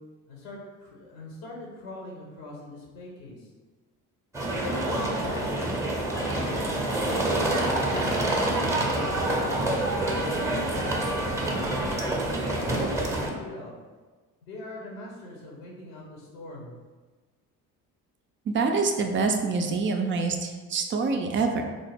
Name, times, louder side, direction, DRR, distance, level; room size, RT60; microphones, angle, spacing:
voice 1, 0.3-3.5 4.5-6.0 7.1-9.5 9.8-11.0 11.6-13.7 14.4-16.7, left 1 dB, 75° left, -3 dB, 1.0 m, -42 dB
sound 1, 4.3-13.3, right 1 dB, 5° right, 0.7 m, -27 dB
voice 2, 18.5-21.6, right 4 dB, 30° right, 4 dB, 0.4 m, -26 dB
3.8 x 2.0 x 3.3 m, 1.3 s
hypercardioid pair, 50°, 46 cm